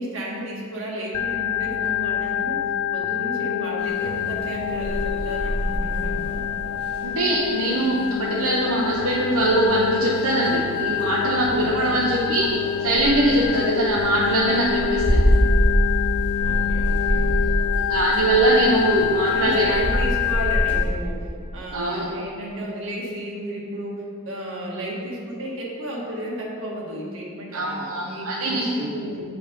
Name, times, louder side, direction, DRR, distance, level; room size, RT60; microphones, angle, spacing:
voice 1, 0.0-6.4 11.5-12.0 16.4-17.5 19.3-29.2, equal, 60° right, -4 dB, 1.7 m, -33 dB
Organ, 1.1-20.8, left 10 dB, 90° left, 0.3 m, -27 dB
sound 1, 3.8-20.9, equal, 25° left, 1.3 m, -26 dB
voice 2, 7.0-15.2 17.9-19.8 21.7-22.0 27.5-28.9, right 1 dB, 75° right, -5 dB, 0.9 m, -22 dB
7.9 x 5.5 x 5.3 m, 2.3 s
head